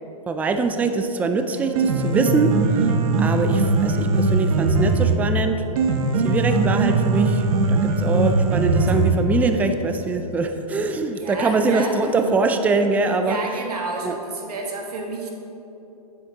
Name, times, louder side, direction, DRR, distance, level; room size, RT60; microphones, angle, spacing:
voice 1, 0.3-2.9 3.2-5.6 6.2-7.4 7.7-13.4 14.0-14.2, right 3 dB, 10° right, 6 dB, 0.3 m, -23 dB
Piano, 1.6-9.6, right 3 dB, 60° right, 0.9 m, -20 dB
voice 2, 11.1-12.4 13.2-15.3, right 3 dB, 80° right, 0 dB, 1.6 m, -30 dB
9.5 x 7.9 x 2.9 m, 3.0 s
hypercardioid pair, 125°, 20 cm